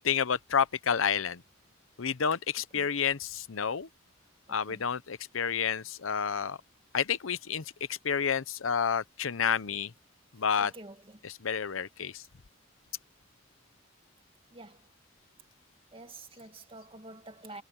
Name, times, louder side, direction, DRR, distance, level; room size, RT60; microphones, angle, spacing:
voice 1, 0.0-1.4 2.0-3.9 4.5-6.6 6.9-7.6 7.9-9.9 10.4-10.7 11.2-12.2, left 7 dB, 70° left, 0.7 m, -30 dB
voice 2, 4.5-4.8 10.6-11.2 14.5-14.9 15.9-17.6, right 2 dB, 25° right, 2.2 m, -48 dB
head